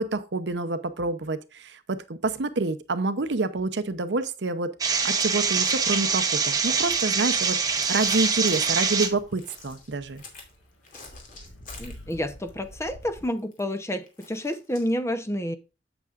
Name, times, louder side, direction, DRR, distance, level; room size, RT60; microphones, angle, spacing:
voice 1, 0.0-10.2, right 3 dB, 75° right, 0.8 m, -28 dB
sound 1, 4.8-9.1, right 5 dB, 20° right, 0.9 m, -24 dB
sound 2, 5.1-13.2, equal, 85° left, 3.7 m, -50 dB
sound 3, 7.1-10.5 10.8-12.5 12.7-14.9, left 4 dB, 50° left, 2.6 m, -46 dB
voice 2, 11.8-15.6, equal, 15° left, 0.8 m, -29 dB
8.3 x 8.0 x 2.5 m
head